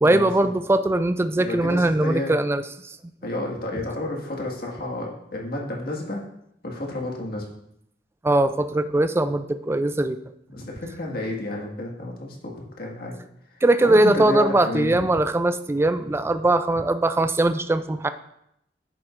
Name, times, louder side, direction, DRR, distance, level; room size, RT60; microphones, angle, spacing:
voice 1, 0.0-3.0 8.2-10.2 13.6-18.1, right 2 dB, 15° right, 10 dB, 0.3 m, -21 dB
voice 2, 1.4-2.4 3.2-6.2 6.6-7.5 10.5-13.2 13.5-15.1, left 1 dB, 60° left, -1 dB, 1.8 m, -31 dB
10.5 x 7.4 x 2.5 m, 0.77 s
head